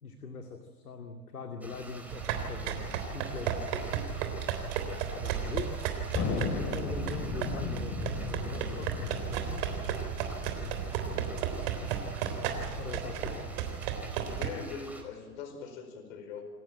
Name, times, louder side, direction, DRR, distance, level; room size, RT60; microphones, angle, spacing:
voice 1, 0.0-3.9 5.1-5.8 6.3-9.7 12.7-13.6, left 4 dB, 90° left, 4 dB, 2.3 m, -42 dB
sound 1, 1.6-15.0, right 1 dB, 5° right, 4.6 m, -48 dB
sound 2, 2.1-14.5, right 8 dB, 50° right, 3.7 m, -34 dB
Thunder, 6.1-13.0, left 5 dB, 35° left, 3.4 m, -37 dB
voice 2, 13.1-13.5 14.3-16.4, left 5 dB, 60° left, 7 dB, 4.7 m, -42 dB
28.0 x 14.5 x 8.9 m, 1.5 s
hypercardioid pair, 110°, 44 cm